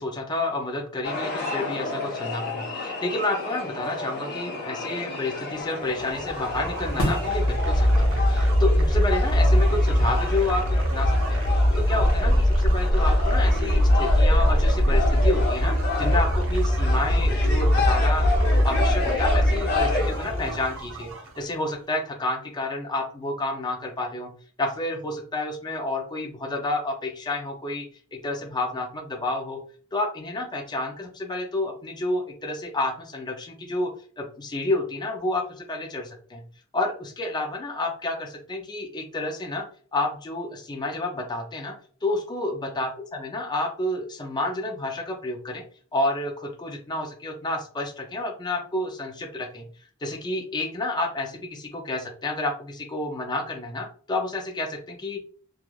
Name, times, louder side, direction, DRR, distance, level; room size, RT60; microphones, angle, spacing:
voice 1, 0.0-11.4 11.7-21.1 21.4-24.3 24.6-27.9 28.1-29.6 29.9-33.9 34.2-36.4 36.7-39.6 39.9-41.7 42.0-45.6 45.9-49.6 50.0-55.2, left 2 dB, 20° left, 2 dB, 0.4 m, -30 dB
sound 1, 1.0-20.6, left 3 dB, 50° left, 0.8 m, -31 dB
sound 2, 5.8-21.5, equal, 65° right, 0.7 m, -22 dB
sound 3, 5.9-11.2, equal, 80° left, 0.9 m, -36 dB
3.0 x 2.3 x 2.3 m, 0.43 s
head